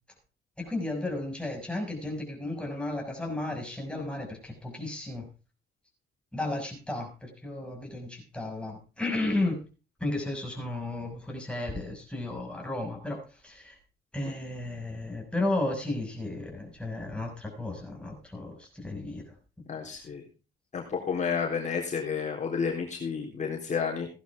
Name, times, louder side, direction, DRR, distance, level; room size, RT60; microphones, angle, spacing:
voice 1, 0.6-5.3 6.3-9.6 10.0-13.8 14.1-19.3 19.8-20.1, left 2 dB, 5° left, 1 dB, 6.2 m, -33 dB
voice 2, 19.7-20.2 20.7-24.1, left 6 dB, 40° left, 0 dB, 3.8 m, -31 dB
16.5 x 11.5 x 3.6 m, 0.33 s
cardioid pair, 90°, 18 cm